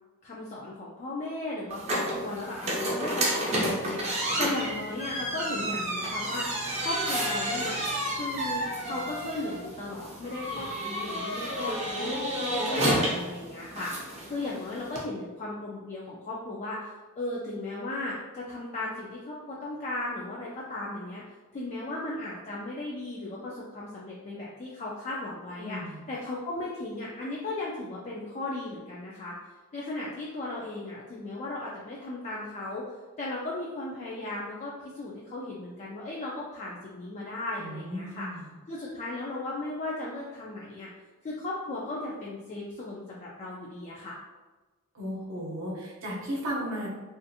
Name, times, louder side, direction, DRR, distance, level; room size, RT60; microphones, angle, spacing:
voice 1, 0.2-7.8 8.1-21.2 21.5-29.4 29.7-38.3 38.7-40.9 41.2-44.2, left 2 dB, 35° left, -5 dB, 0.3 m, -36 dB
sound 1, 1.7-15.0, right 1 dB, 30° right, 0.6 m, -31 dB
voice 2, 25.6-26.0 37.6-38.4 44.9-46.9, equal, 65° right, -4 dB, 0.7 m, -35 dB
2.4 x 2.4 x 2.6 m, 1.3 s
head